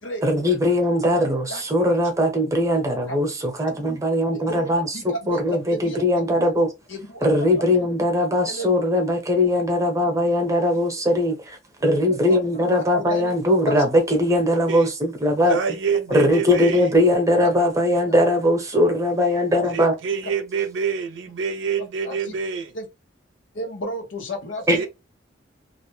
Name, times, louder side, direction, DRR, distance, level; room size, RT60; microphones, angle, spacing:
voice 1, 0.2-6.7 7.2-15.6 16.1-19.9 24.7-24.8, left 1 dB, 15° right, 0.8 m, -20 dB
voice 2, 1.0-1.6 1.9-2.0 3.1-3.2 4.3-4.7 4.9-6.0 6.9-7.5 8.5-8.7 13.0-13.4 13.6-13.7 17.4-17.5 22.0-22.4 22.7-22.9 23.5-24.9, left 1 dB, 90° left, 0.9 m, -32 dB
voice 3, 15.5-16.9 19.7-22.7 24.7-24.9, right 6 dB, 80° right, 0.5 m, -26 dB
2.5 x 2.1 x 3.0 m
head